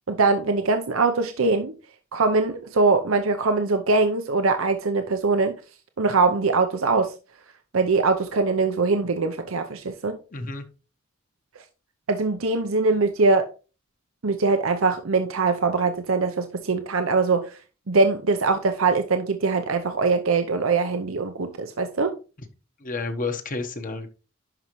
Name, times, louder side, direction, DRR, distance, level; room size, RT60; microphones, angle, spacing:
voice 1, 0.1-1.7 2.1-5.5 6.0-7.1 7.7-10.2 12.1-13.5 14.2-17.6 17.9-22.1, right 3 dB, 80° right, 0.7 m, -22 dB
voice 2, 10.3-10.7 22.8-24.1, left 3 dB, 40° left, 1.1 m, -30 dB
11.0 x 5.5 x 3.1 m
head